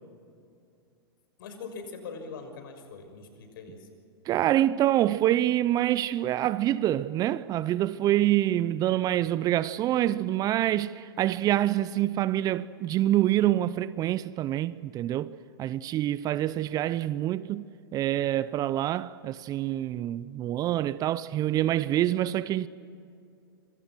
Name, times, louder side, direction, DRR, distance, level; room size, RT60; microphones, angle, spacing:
voice 1, 1.4-3.9, left 4 dB, 60° left, 6.2 m, -42 dB
voice 2, 4.3-15.3 15.6-17.6 17.9-22.7, right 13 dB, 30° right, 0.7 m, -26 dB
27.0 x 26.0 x 6.3 m
hypercardioid pair, 105°, 13 cm